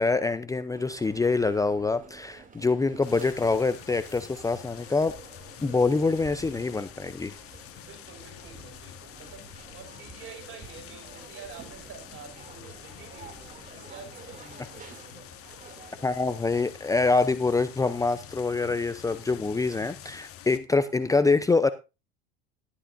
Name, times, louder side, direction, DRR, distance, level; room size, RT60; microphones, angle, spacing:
voice 1, 0.0-5.2 5.6-7.3 16.0-21.7, left 3 dB, 10° left, 0.7 m, -25 dB
sound 1, 0.7-16.4, right 4 dB, 25° right, 2.9 m, -49 dB
sound 2, 3.0-20.6, left 11 dB, 50° left, 1.5 m, -47 dB
voice 2, 7.8-9.5 9.7-14.9, right 6 dB, 45° right, 5.7 m, -48 dB
13.5 x 11.5 x 2.7 m
hypercardioid pair, 90°, 30 cm